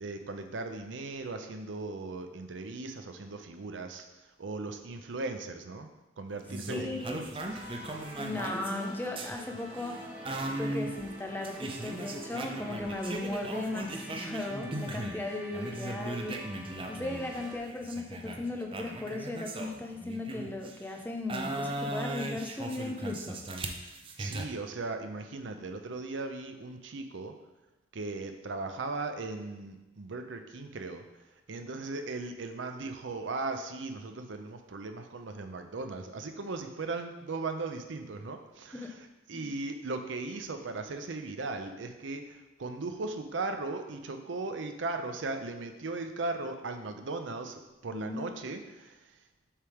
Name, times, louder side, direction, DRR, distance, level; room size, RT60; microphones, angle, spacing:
voice 1, 0.0-4.0 4.4-5.9 6.2-7.3 24.2-27.3 27.9-31.0 31.5-49.0, right 3 dB, 90° right, 6 dB, 0.6 m, -38 dB
sound 1, 6.5-15.2 15.5-20.8 21.3-24.5, right 1 dB, 30° right, 0.5 m, -38 dB
voice 2, 6.7-7.2 8.2-23.4 38.7-38.9 39.3-39.5 47.9-48.3, left 2 dB, 10° left, 2 dB, 0.6 m, -37 dB
sound 2, 7.4-17.6, right 1 dB, 5° right, 1.4 m, -47 dB
7.3 x 3.5 x 4.9 m, 1.0 s
head